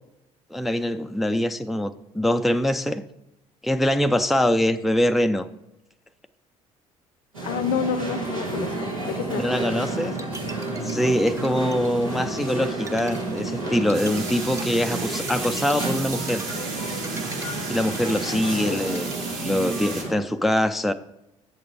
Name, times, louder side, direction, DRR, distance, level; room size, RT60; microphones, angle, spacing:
voice 1, 0.5-3.0 3.6-5.5 9.4-10.1 10.8-16.4 17.7-19.1 19.4-20.9, left 1 dB, ahead, 0.4 m, -23 dB
sound 1, 7.3-20.1, right 2 dB, 90° right, 1.8 m, -31 dB
voice 2, 7.4-9.6 18.6-18.8, left 7 dB, 55° left, 0.6 m, -29 dB
Bowed string instrument, 10.1-19.3, right 2 dB, 20° right, 0.8 m, -42 dB
sound 2, 13.9-20.0, right 4 dB, 55° right, 2.5 m, -35 dB
7.9 x 6.8 x 4.9 m
figure-of-eight pair, 55°, 17 cm